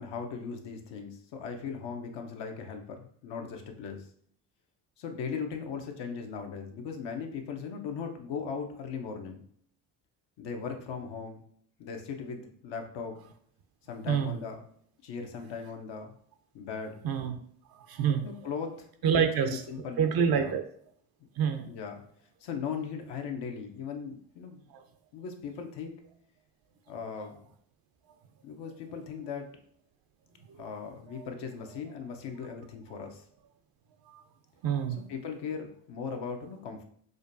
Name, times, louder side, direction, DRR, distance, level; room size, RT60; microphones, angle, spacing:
voice 1, 0.0-4.1 5.0-9.4 10.4-11.4 11.8-13.1 13.9-14.6 15.0-16.1 16.5-17.0 18.2-20.5 21.7-22.0 22.4-24.7 25.1-26.0 26.9-27.5 28.4-29.5 30.6-33.2 35.1-36.8, left 6 dB, 60° left, 4 dB, 0.8 m, -38 dB
voice 2, 17.0-17.4 17.9-18.3 19.0-19.6 20.0-20.6 21.4-21.7 24.7-24.8 30.5-30.7 31.1-31.2 34.1-34.2 34.6-35.0, right 7 dB, 50° right, 6 dB, 0.6 m, -27 dB
5.0 x 2.2 x 2.6 m, 0.62 s
hypercardioid pair, 55°, 47 cm